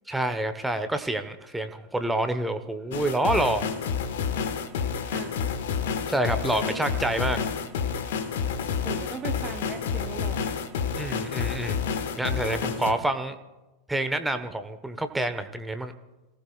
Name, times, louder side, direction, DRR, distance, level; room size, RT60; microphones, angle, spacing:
voice 1, 0.1-3.7 6.1-7.4 11.0-11.8 12.2-13.3 13.9-15.9, right 1 dB, 5° right, 9 dB, 1.1 m, -27 dB
sound 1, 2.9-12.9, left 6 dB, 55° left, 1.3 m, -29 dB
voice 2, 5.1-5.4 6.4-6.8 8.8-10.5, right 8 dB, 25° right, 6 dB, 0.8 m, -39 dB
28.0 x 18.0 x 2.4 m, 1.1 s
figure-of-eight pair, 90°, 0 cm